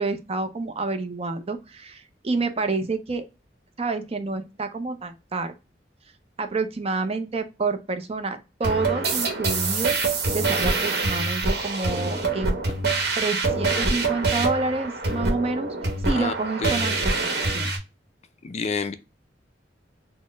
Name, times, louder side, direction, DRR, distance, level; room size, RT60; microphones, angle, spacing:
voice 1, 0.0-3.2 3.8-5.5 6.4-12.6 13.2-15.8 16.0-17.1 17.5-17.7, right 3 dB, 35° right, 0.5 m, -28 dB
sound 1, 8.6-17.8, right 3 dB, 60° right, 1.0 m, -25 dB
voice 2, 18.4-18.9, left 4 dB, 40° left, 0.4 m, -28 dB
4.2 x 2.1 x 3.2 m
head